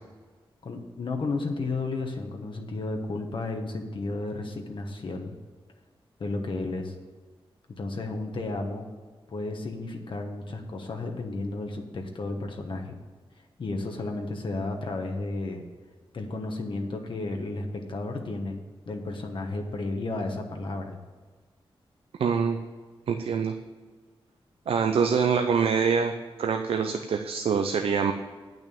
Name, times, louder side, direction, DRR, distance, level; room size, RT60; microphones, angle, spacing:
voice 1, 0.6-5.3 6.2-7.0 7.8-8.9 9.3-13.0 13.6-15.7 16.1-18.6 18.9-21.0, left 2 dB, 60° left, 3 dB, 1.2 m, -33 dB
voice 2, 22.2-22.6 23.1-23.5 24.7-26.1 26.4-28.1, right 6 dB, 80° right, 6 dB, 0.6 m, -24 dB
8.9 x 6.1 x 6.9 m, 1.5 s
wide cardioid pair, 100°, 10 cm